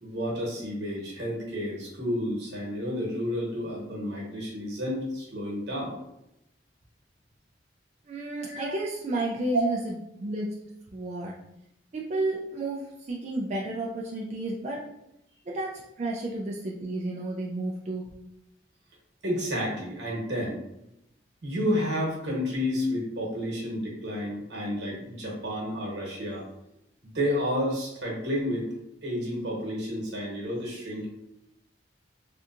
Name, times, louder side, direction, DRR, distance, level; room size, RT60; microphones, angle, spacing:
voice 1, 0.0-6.0 8.5-8.7 9.5-9.6 19.2-20.6 21.4-26.5 27.0-31.1, equal, 75° right, -2 dB, 1.1 m, -31 dB
voice 2, 8.1-9.9 10.2-10.5 10.9-11.3 11.9-14.9 15.5-18.1, right 2 dB, 40° right, -3 dB, 0.3 m, -32 dB
3.4 x 2.7 x 2.5 m, 0.84 s
head